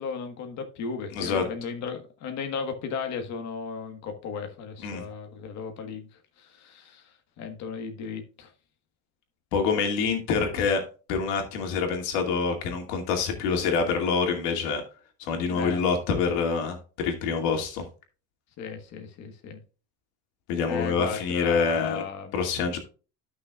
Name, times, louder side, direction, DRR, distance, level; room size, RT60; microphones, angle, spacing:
voice 1, 0.0-6.1 6.4-8.5 15.4-15.8 18.6-19.6 20.6-22.3, left 5 dB, 35° left, 1.5 m, -35 dB
voice 2, 1.1-1.4 4.8-5.0 9.5-10.8 11.1-14.8 15.2-17.8 20.5-22.0 22.3-22.8, left 5 dB, 85° left, 2.4 m, -26 dB
13.5 x 6.1 x 2.4 m
cardioid pair, 175°, 45 cm